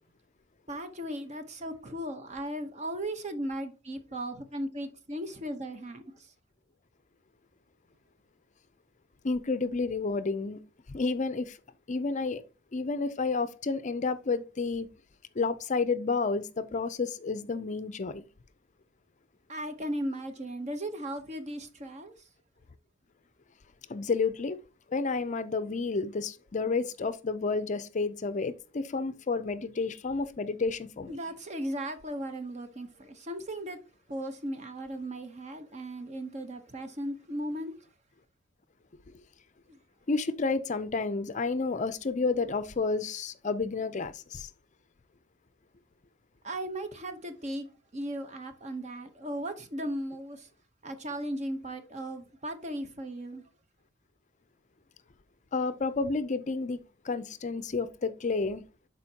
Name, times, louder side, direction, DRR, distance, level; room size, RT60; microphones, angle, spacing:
voice 1, 0.7-6.3 19.5-22.1 31.1-33.8 34.1-37.7 39.7-39.8 46.4-50.5 50.8-53.4, right 1 dB, 35° right, 0.9 m, -37 dB
voice 2, 9.2-10.6 10.9-11.6 11.9-12.4 12.7-14.9 15.4-18.3 23.9-24.6 24.9-31.2 40.1-44.5 55.5-58.6, left 4 dB, 35° left, 0.5 m, -30 dB
11.5 x 4.4 x 2.8 m
head